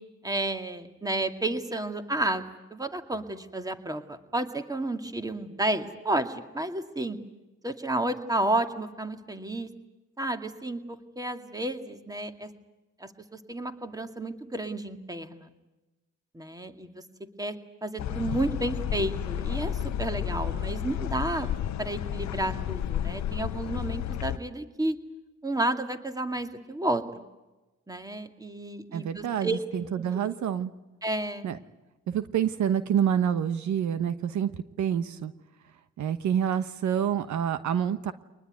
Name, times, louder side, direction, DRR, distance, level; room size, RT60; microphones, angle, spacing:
voice 1, 0.2-7.2 7.6-9.7 10.2-12.5 13.0-13.1 13.5-15.5 16.3-17.0 17.4-17.5 17.8-21.5 21.8-25.0 25.4-27.2 27.9-29.6 30.0-30.1 31.0-31.5, right 2 dB, 10° right, 7 dB, 2.3 m, -31 dB
sound 1, 18.0-24.4, left 10 dB, 65° left, 0.9 m, -31 dB
voice 2, 28.9-30.7 31.4-31.6 32.1-34.5 34.8-35.3 36.0-38.1, right 9 dB, 70° right, 12 dB, 1.2 m, -27 dB
24.0 x 20.0 x 9.5 m, 1.1 s
cardioid pair, 90°, 30 cm